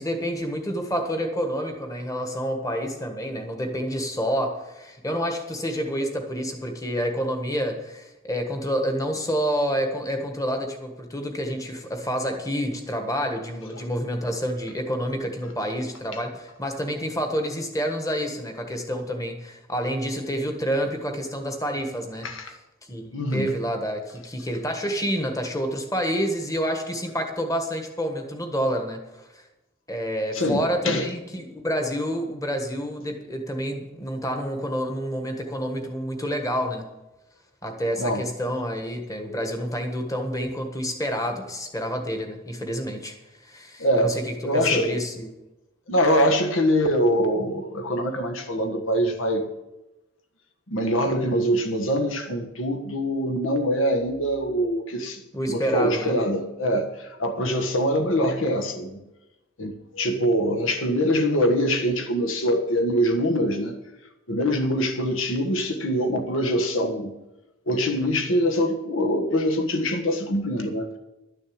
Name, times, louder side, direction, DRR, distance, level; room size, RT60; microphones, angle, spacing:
voice 1, 0.0-22.5 22.9-29.4 29.9-36.9 37.6-43.1 43.4-45.3 55.3-56.1, equal, 15° left, 1.5 m, -28 dB
voice 2, 23.1-23.5 30.3-31.1 38.0-38.2 43.8-44.2 44.4-45.0 45.9-49.5 50.7-55.2 55.5-59.0 59.6-63.7 64.3-67.1 67.7-71.0, equal, 75° left, 1.5 m, -24 dB
12.0 x 6.6 x 8.7 m
head